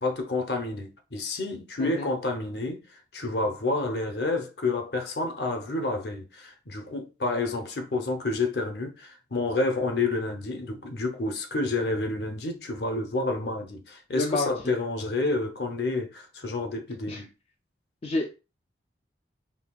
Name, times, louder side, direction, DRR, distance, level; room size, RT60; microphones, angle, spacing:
voice 1, 0.0-17.3, left 2 dB, 60° left, 0.7 m, -29 dB
voice 2, 14.1-14.7 17.1-17.2 18.0-18.4, left 2 dB, 35° left, 0.4 m, -29 dB
5.5 x 2.3 x 2.3 m
head